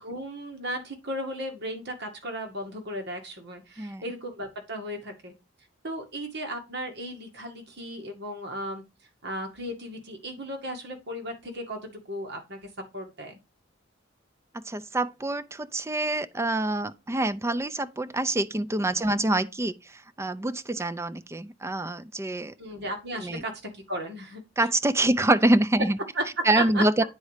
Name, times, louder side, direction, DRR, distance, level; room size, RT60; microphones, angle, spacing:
voice 1, 0.0-5.3 5.8-8.8 9.2-12.6 12.9-13.4 19.0-19.2 22.6-23.5 23.9-24.7 26.2-26.8, right 1 dB, 60° right, 1.9 m, -35 dB
voice 2, 14.7-19.7 20.2-22.5 23.2-23.4 24.6-26.0 26.4-27.0, right 1 dB, 15° right, 0.5 m, -25 dB
9.2 x 4.2 x 4.9 m
head